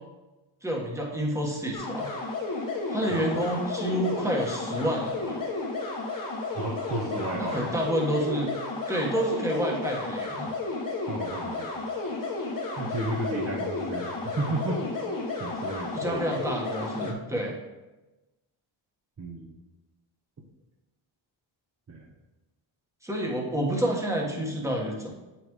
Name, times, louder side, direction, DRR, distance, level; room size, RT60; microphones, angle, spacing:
voice 1, 0.6-2.1 2.9-5.4 7.4-8.5 8.9-10.5 15.9-17.6 23.0-25.2, right 1 dB, 5° right, -1 dB, 1.4 m, -29 dB
sound 1, 1.7-17.1, left 3 dB, 45° left, 1.4 m, -32 dB
voice 2, 3.1-3.4 6.5-7.7 11.1-11.7 12.8-14.8 15.4-16.3 19.2-19.5 21.9-22.1, right 2 dB, 35° right, -4 dB, 1.0 m, -33 dB
8.4 x 5.7 x 3.1 m, 1.1 s
wide cardioid pair, 120°, 48 cm